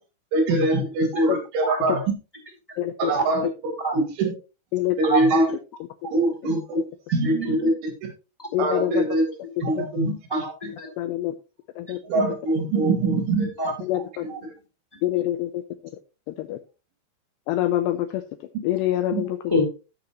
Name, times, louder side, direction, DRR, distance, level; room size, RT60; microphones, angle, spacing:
voice 1, 0.3-2.0 3.0-3.5 3.9-4.3 5.0-5.4 6.1-6.8 7.1-7.9 8.6-9.4 9.6-10.2 12.0-13.5 14.4-14.5 19.1-19.4, right 2 dB, 75° right, 3 dB, 4.5 m, -23 dB
voice 2, 2.8-3.1 4.7-5.0 8.5-8.9 11.0-11.3 11.8-12.0 13.9-14.2 15.0-15.5 16.4-16.6 17.5-18.2 18.6-19.3, left 14 dB, 85° left, 8 dB, 2.4 m, -25 dB
voice 3, 5.0-5.5 6.0-6.1 7.2-7.6 10.3-10.9 11.9-12.0 13.6-14.4 19.5-19.6, equal, 10° left, 1 dB, 1.7 m, -27 dB
16.0 x 6.2 x 3.0 m, 0.31 s
omnidirectional pair, 5.6 m